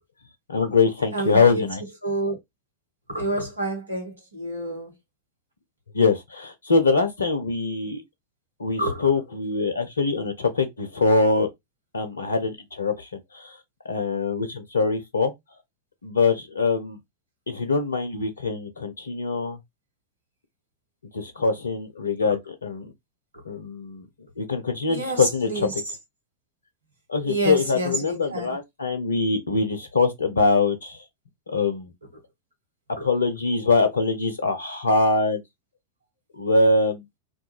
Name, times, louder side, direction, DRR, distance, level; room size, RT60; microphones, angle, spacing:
voice 1, 0.5-1.8 5.9-8.0 8.6-11.5 11.9-13.1 13.3-13.6 13.9-15.3 16.0-17.0 17.5-19.6 21.1-22.9 23.5-24.1 24.4-25.8 27.1-31.0 31.5-31.9 33.0-35.4 36.4-37.0, left 4 dB, 75° left, 0.4 m, -23 dB
voice 2, 1.1-1.7 2.0-2.4 3.1-4.9 8.8-9.1 24.9-25.7 27.2-28.6 33.0-33.1, right 2 dB, 80° right, 1.1 m, -28 dB
2.3 x 2.2 x 2.9 m
figure-of-eight pair, 90°, 0 cm